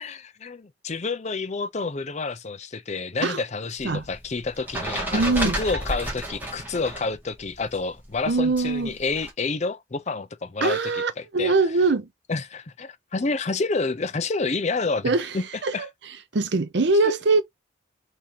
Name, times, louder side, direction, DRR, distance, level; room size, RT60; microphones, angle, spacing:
voice 1, 0.0-11.5 12.3-15.5 15.7-15.9 17.0-17.1, left 3 dB, 35° left, 0.5 m, -29 dB
sound 1, 3.8-7.1 7.4-9.3, right 1 dB, 10° right, 1.9 m, -32 dB
voice 2, 5.1-5.6 8.3-8.9 10.6-12.1 15.0-15.3 15.6-15.7 16.3-17.4, right 3 dB, 60° right, 0.7 m, -22 dB
3.6 x 3.2 x 4.2 m
head